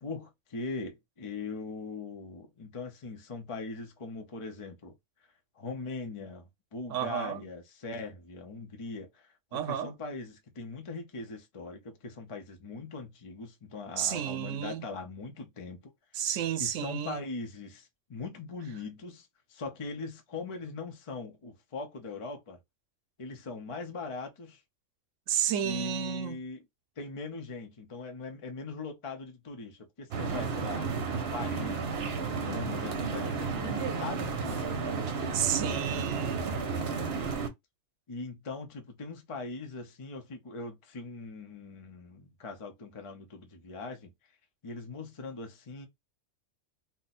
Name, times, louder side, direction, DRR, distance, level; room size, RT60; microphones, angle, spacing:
voice 1, 0.0-4.9 5.6-15.9 16.2-16.3 16.6-22.6 23.2-24.6 25.6-26.6 27.0-30.9 31.3-31.9 32.3-35.0 38.1-44.1 44.6-45.9, left 3 dB, 35° left, 0.6 m, -41 dB
voice 2, 6.9-7.4 9.5-9.9 14.0-14.9 16.1-17.2 25.3-26.4 35.3-36.5, right 10 dB, 85° right, 0.9 m, -31 dB
sound 1, 30.1-37.5, right 5 dB, 60° right, 0.9 m, -32 dB
2.6 x 2.2 x 4.0 m
omnidirectional pair, 1.3 m